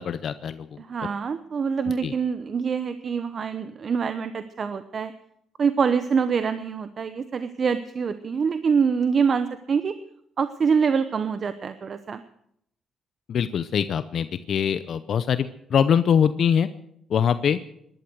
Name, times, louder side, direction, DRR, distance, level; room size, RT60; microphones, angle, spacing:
voice 1, 0.0-0.7 2.0-2.1 13.3-16.7 17.1-17.6, left 8 dB, 60° left, 12 dB, 0.7 m, -23 dB
voice 2, 0.8-5.1 5.6-10.0 10.4-12.2, right 6 dB, 45° right, 11 dB, 0.9 m, -25 dB
18.0 x 12.0 x 6.3 m, 0.71 s
cardioid pair, 90°, 0 cm